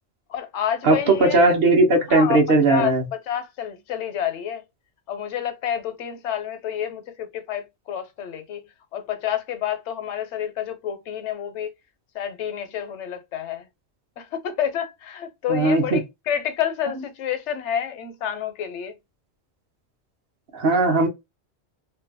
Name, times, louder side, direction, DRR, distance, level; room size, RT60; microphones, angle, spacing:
voice 1, 0.3-1.4 2.1-2.4 2.7-3.0 3.3-4.6 5.1-11.7 12.1-13.7 14.2-19.0, left 9 dB, 85° left, 1.0 m, -29 dB
voice 2, 0.8-3.0 15.5-16.0 20.5-21.1, right 2 dB, 60° right, 0.9 m, -18 dB
2.7 x 2.2 x 2.5 m
omnidirectional pair, 1.2 m